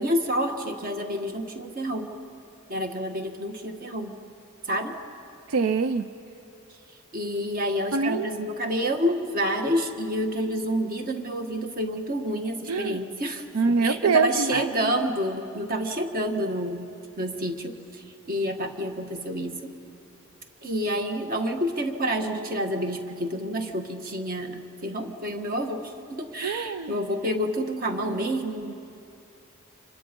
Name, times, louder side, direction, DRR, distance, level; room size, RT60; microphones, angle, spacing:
voice 1, 0.0-2.1 2.7-4.1 4.7-5.0 7.1-16.9 17.2-19.7 20.6-28.7, equal, 45° right, 5 dB, 1.6 m, -29 dB
voice 2, 5.5-6.1 7.9-8.3 12.7-13.0 13.5-14.7 26.4-26.9, right 5 dB, 85° right, 11 dB, 0.6 m, -24 dB
29.5 x 26.5 x 5.3 m, 2.7 s
head